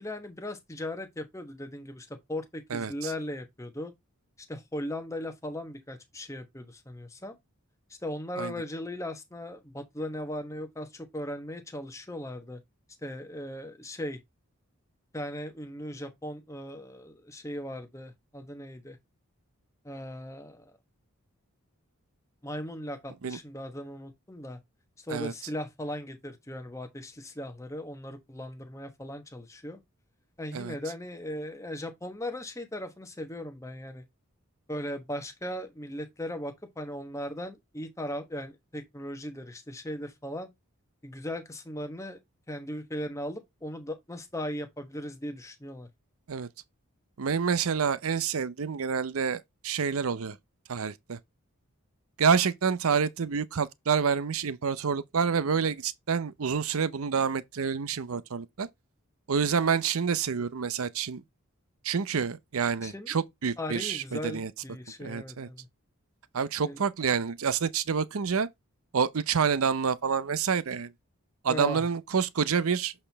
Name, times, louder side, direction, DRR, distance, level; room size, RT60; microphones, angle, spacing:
voice 1, 0.0-3.9 4.5-7.4 7.9-12.6 13.0-14.2 15.1-19.0 19.8-20.7 22.4-24.6 25.0-29.8 30.4-34.0 34.7-40.5 41.0-42.2 42.5-45.9 62.8-63.1 63.6-65.7 66.6-66.8 71.5-71.9, left 1 dB, 15° left, 1.0 m, -38 dB
voice 2, 2.7-3.1 8.4-8.5 23.2-23.4 25.1-25.3 30.5-30.7 46.3-46.5 47.2-50.4 50.7-51.2 52.2-58.7 59.3-61.2 61.8-64.5 65.0-65.5 66.3-68.5 68.9-70.9 71.4-72.9, right 6 dB, 75° right, 0.6 m, -28 dB
7.7 x 4.4 x 3.4 m
head